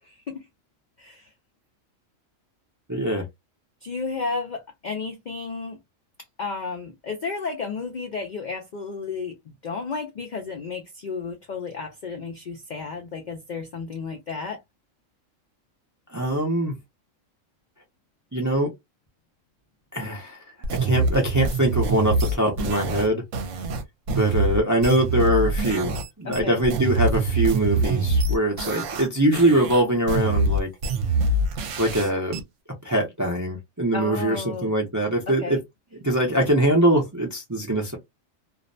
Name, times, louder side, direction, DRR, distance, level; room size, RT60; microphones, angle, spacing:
voice 1, 0.1-0.4 1.0-1.3 3.8-5.8 6.4-9.4 9.6-14.6 26.2-26.6 33.9-34.7 35.3-35.6, left 4 dB, 70° left, 0.4 m, -32 dB
voice 2, 2.9-3.2 16.1-16.8 18.3-18.7 19.9-20.4 20.7-23.2 24.1-30.7 31.8-32.4 32.8-35.6 36.0-38.0, right 1 dB, 25° right, 0.4 m, -23 dB
sound 1, 20.6-26.1 26.3-29.1 29.3-32.4, right 2 dB, 70° right, 0.9 m, -24 dB
2.5 x 2.1 x 2.5 m
omnidirectional pair, 1.4 m